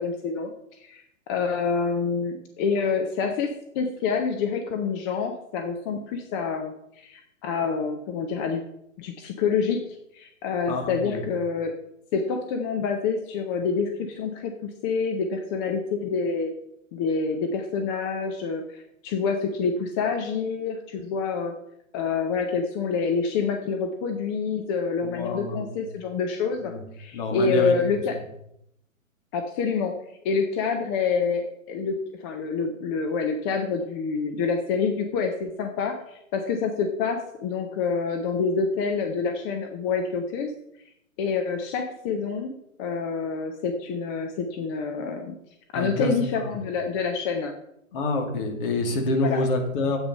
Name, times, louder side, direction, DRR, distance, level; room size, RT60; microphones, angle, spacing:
voice 1, 0.0-8.6 9.0-11.8 12.1-16.5 16.9-21.5 21.9-28.2 29.3-29.9 30.2-40.5 41.2-45.4 45.7-47.5 49.2-49.4, left 5 dB, 20° left, 4 dB, 0.5 m, -27 dB
voice 2, 10.7-11.2 25.0-25.7 26.6-26.8 27.1-27.8 45.7-46.5 47.9-50.0, left 2 dB, 40° left, 3 dB, 2.4 m, -27 dB
9.3 x 8.0 x 5.5 m, 0.79 s
figure-of-eight pair, 120°, 41 cm